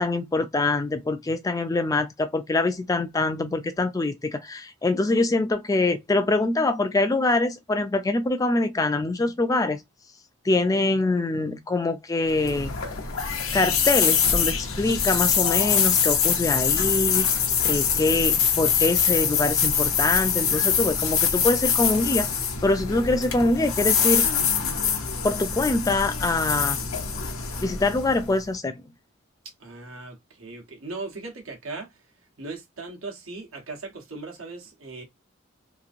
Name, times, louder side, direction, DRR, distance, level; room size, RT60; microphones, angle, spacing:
voice 1, 0.0-9.8 10.5-12.7 13.5-17.3 17.6-22.3 22.6-24.3 25.2-26.8 27.6-28.8, left 2 dB, 15° left, 0.3 m, -24 dB
sound 1, 12.3-28.4, left 7 dB, 90° left, 0.8 m, -24 dB
voice 2, 29.6-32.0 32.4-35.0, right 3 dB, 85° right, 1.1 m, -38 dB
2.9 x 2.6 x 2.5 m
head